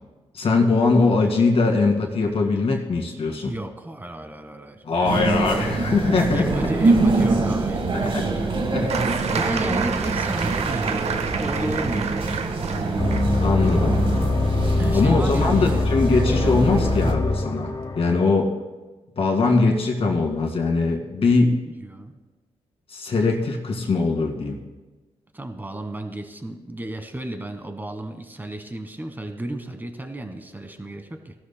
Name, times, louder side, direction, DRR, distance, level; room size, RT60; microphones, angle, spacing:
voice 1, 0.3-3.5 4.8-6.5 7.9-8.3 8.7-8.9 13.4-14.0 14.9-18.5 19.2-21.6 22.9-24.6, left 3 dB, 55° left, 1 dB, 2.1 m, -21 dB
voice 2, 3.5-4.8 6.3-8.7 9.3-12.2 14.8-15.8 21.8-22.2 25.3-31.3, right 1 dB, 15° right, 7 dB, 1.3 m, -33 dB
sound 1, 5.0-17.1, right 3 dB, 50° right, 1.5 m, -24 dB
sound 2, 8.9-16.4 17.6-17.7, right 6 dB, 65° right, 0.7 m, -31 dB
sound 3, 13.0-18.3, left 3 dB, 35° left, 1.0 m, -23 dB
17.5 x 12.5 x 2.2 m, 1.2 s
cardioid pair, 70°, 12 cm